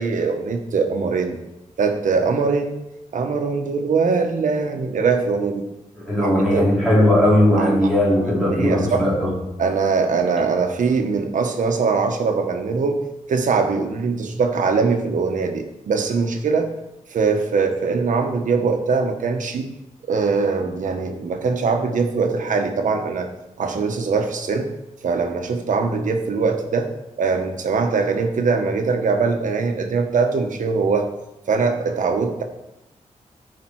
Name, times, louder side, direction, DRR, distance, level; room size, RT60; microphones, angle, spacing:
voice 1, 0.0-1.4 1.8-2.7 3.1-5.7 6.2-6.7 7.6-7.7 8.5-9.1 9.6-13.0 13.3-16.7 17.1-19.7 20.1-23.3 23.6-24.7 25.0-26.9 27.2-31.1 31.5-32.4, right 4 dB, 85° right, 5 dB, 1.2 m, -22 dB
voice 2, 6.0-9.3, left 1 dB, ahead, -8 dB, 3.7 m, -18 dB
14.5 x 4.9 x 4.7 m, 0.93 s
wide cardioid pair, 170°, 13 cm